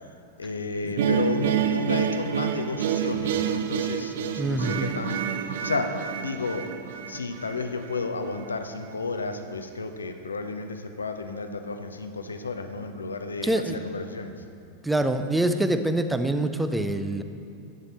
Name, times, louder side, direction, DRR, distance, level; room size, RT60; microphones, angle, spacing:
voice 1, 0.4-6.7 7.1-14.3, left 3 dB, 75° left, 7 dB, 0.7 m, -32 dB
sound 1, 1.0-8.1, right 8 dB, 55° right, 0.5 m, -28 dB
voice 2, 4.4-4.9 13.4-13.8 14.8-17.2, right 1 dB, 5° right, 9 dB, 0.5 m, -25 dB
11.0 x 8.2 x 4.2 m, 2.4 s
figure-of-eight pair, 90°, 0 cm